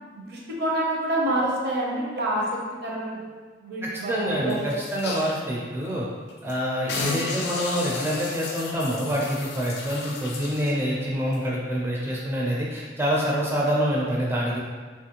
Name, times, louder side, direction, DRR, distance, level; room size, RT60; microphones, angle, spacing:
voice 1, 0.3-3.2 3.6-4.7, right 1 dB, 55° right, -3 dB, 0.6 m, -27 dB
voice 2, 3.8-6.1 6.4-14.6, equal, 10° right, -4 dB, 0.4 m, -26 dB
sound 1, 4.5-5.4 5.8-5.9 6.3-6.5 6.9-10.8 11.3-11.4, left 3 dB, 55° left, 0.4 m, -33 dB
3.0 x 2.4 x 2.8 m, 1.5 s
head